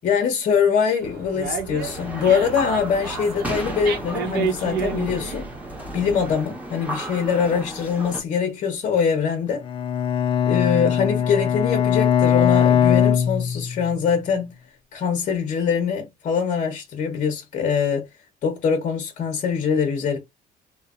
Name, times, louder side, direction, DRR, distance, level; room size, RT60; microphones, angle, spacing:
voice 1, 0.0-5.5 5.9-9.6 10.5-14.5 14.9-18.1 18.4-20.2, left 6 dB, 45° left, 0.7 m, -23 dB
Dog, 1.0-6.4, right 6 dB, 70° right, 0.8 m, -31 dB
sound 1, 1.8-8.2, right 1 dB, 10° right, 0.9 m, -34 dB
Bowed string instrument, 9.6-14.0, left 9 dB, 30° left, 0.4 m, -20 dB
3.0 x 2.1 x 2.3 m
cardioid pair, 110°, 17 cm